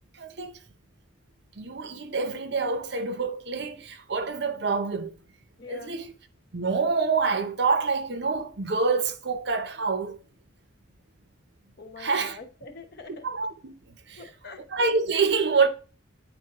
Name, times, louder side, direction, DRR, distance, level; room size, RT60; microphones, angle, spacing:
voice 1, 0.2-0.6 1.6-5.1 5.7-6.1 6.5-10.2 12.0-12.4 13.2-13.7 14.1-14.2 14.7-15.7, right 4 dB, 55° right, 0.6 m, -26 dB
voice 2, 5.6-5.9 11.8-13.2 14.2-14.6, left 3 dB, 50° left, 1.0 m, -44 dB
9.5 x 4.0 x 2.9 m
head